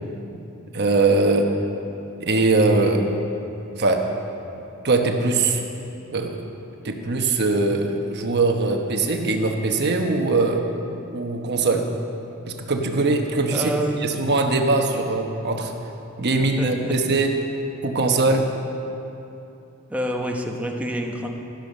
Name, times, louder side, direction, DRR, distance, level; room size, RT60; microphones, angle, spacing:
voice 1, 0.7-1.5 2.2-3.1 3.8-4.1 4.8-5.6 6.1-6.4 6.8-10.6 11.1-11.9 12.5-13.7 14.0-15.7 16.2-17.4 17.8-18.5, right 3 dB, 55° right, 3 dB, 1.1 m, -21 dB
voice 2, 13.5-14.3 16.3-16.9 19.9-21.3, right 1 dB, 5° right, 1 dB, 0.9 m, -28 dB
12.0 x 11.0 x 5.4 m, 2.8 s
head